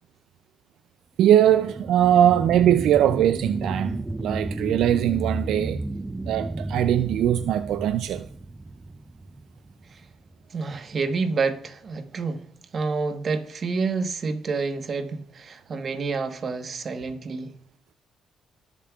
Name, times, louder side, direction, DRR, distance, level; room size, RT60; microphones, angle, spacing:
voice 1, 1.2-5.8 6.2-8.3, right 11 dB, 80° right, 0.3 m, -21 dB
sound 1, 1.4-10.3 10.8-10.9, right 2 dB, 15° right, 0.4 m, -33 dB
voice 2, 10.5-12.4 12.7-17.5, right 4 dB, 50° right, 1.2 m, -28 dB
20.0 x 7.3 x 2.4 m
cardioid pair, 90°, 0 cm